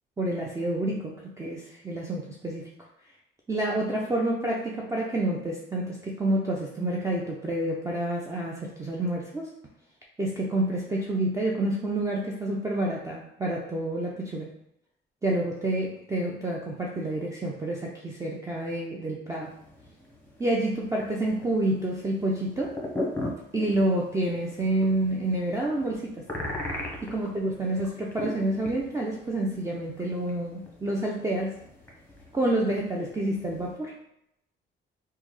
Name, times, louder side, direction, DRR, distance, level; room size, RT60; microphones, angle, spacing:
voice 1, 0.2-2.7 3.5-9.5 10.2-14.5 15.2-19.5 20.4-22.7 23.5-26.2 27.0-31.6 32.3-33.9, right 1 dB, 15° right, -2 dB, 0.4 m, -28 dB
sound 1, 19.4-33.8, left 1 dB, 10° left, 0.9 m, -40 dB
3.3 x 2.1 x 3.1 m, 0.78 s
cardioid pair, 90°, 20 cm